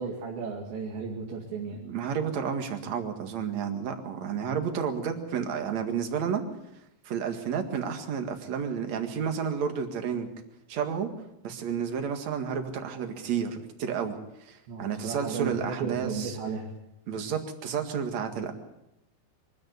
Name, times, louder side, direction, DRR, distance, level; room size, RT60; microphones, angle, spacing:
voice 1, 0.0-1.8 14.7-16.7, right 5 dB, 90° right, -2 dB, 4.5 m, -34 dB
voice 2, 1.8-6.4 7.0-10.3 10.7-11.1 11.4-14.2 14.4-16.4 17.1-18.5, right 7 dB, 50° right, 5 dB, 2.6 m, -31 dB
24.0 x 13.5 x 8.3 m, 0.88 s
omnidirectional pair, 4.9 m